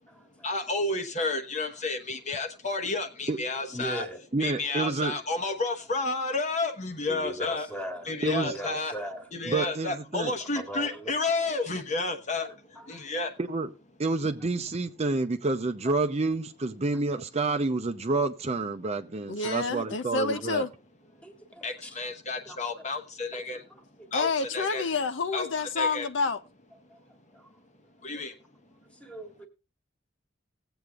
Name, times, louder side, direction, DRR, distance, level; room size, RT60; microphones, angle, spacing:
voice 1, 0.4-4.0 4.4-7.7 8.1-8.9 9.3-12.5 12.9-13.3 21.6-23.6 24.1-24.8 25.3-25.5 25.8-26.1 28.0-28.3, left 3 dB, 40° left, 1.1 m, -31 dB
voice 2, 3.7-4.2 7.1-9.3 10.6-11.1 12.7-13.1 15.8-15.9 19.4-19.6 20.3-20.4 21.2-22.0 22.4-22.8 23.3-23.4 23.7-24.3 26.9-27.0 27.3-27.5 28.0-28.4 28.7-29.5, equal, 5° left, 1.6 m, -40 dB
voice 3, 4.3-5.2 8.2-8.5 9.5-10.3 13.4-13.7 14.0-20.7, right 3 dB, 35° right, 0.6 m, -29 dB
voice 4, 19.3-20.7 24.1-26.4, left 4 dB, 75° left, 0.6 m, -28 dB
19.0 x 8.0 x 2.4 m
head